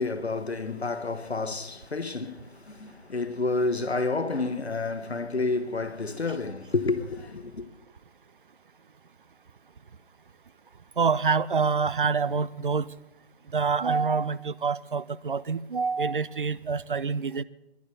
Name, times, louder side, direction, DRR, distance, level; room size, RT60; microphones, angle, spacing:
voice 1, 0.0-7.7, left 3 dB, 80° left, 1.1 m, -30 dB
voice 2, 11.0-12.9 13.5-17.4, right 5 dB, 55° right, 0.5 m, -26 dB
10.5 x 10.5 x 8.3 m
figure-of-eight pair, 150°, 32 cm